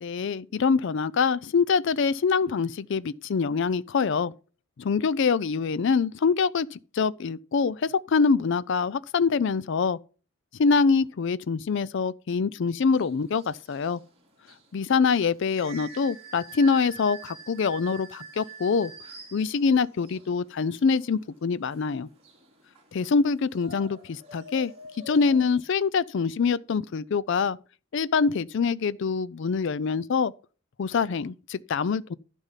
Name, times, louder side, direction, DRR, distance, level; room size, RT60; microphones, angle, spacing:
voice 1, 0.0-4.3 4.8-10.0 10.6-14.0 14.7-18.9 19.3-22.1 22.9-24.7 25.1-27.6 27.9-30.3 30.8-32.1, left 5 dB, 60° left, 0.4 m, -25 dB
sound 1, 12.9-25.6, right 4 dB, 30° right, 2.7 m, -46 dB
11.5 x 5.3 x 5.7 m
head